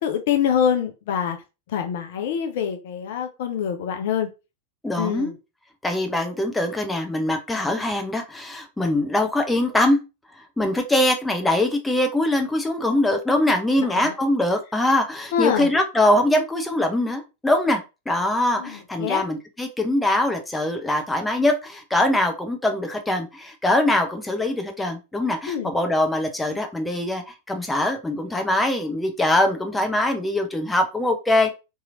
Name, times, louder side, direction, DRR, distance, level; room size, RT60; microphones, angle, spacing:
voice 1, 0.0-1.4 1.7-4.3 5.0-5.4 14.0-14.1 15.3-15.7 18.6-19.2 25.5-25.7, left 8 dB, 55° left, 6 dB, 0.4 m, -25 dB
voice 2, 4.8-5.3 5.8-10.0 10.6-17.8 18.1-31.5, left 1 dB, 10° left, 4 dB, 0.6 m, -22 dB
2.8 x 2.7 x 2.5 m, 0.27 s
figure-of-eight pair, 90°, 0 cm